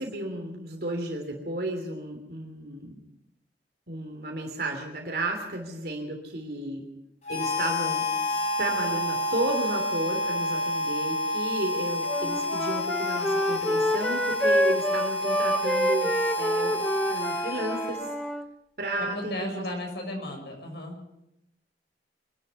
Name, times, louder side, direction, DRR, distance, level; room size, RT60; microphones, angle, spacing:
voice 1, 0.0-3.0 3.9-6.8 7.3-8.1 8.6-18.1 18.8-19.6, right 1 dB, 60° right, 2 dB, 3.1 m, -33 dB
Harmonica, 7.2-18.3, left 1 dB, 40° left, 6.9 m, -29 dB
Wind instrument woodwind instrument, 12.1-18.5, equal, 5° left, 0.9 m, -27 dB
voice 2, 19.0-21.1, left 1 dB, 70° left, 2 dB, 7.0 m, -35 dB
25.0 x 11.5 x 9.4 m, 0.84 s
head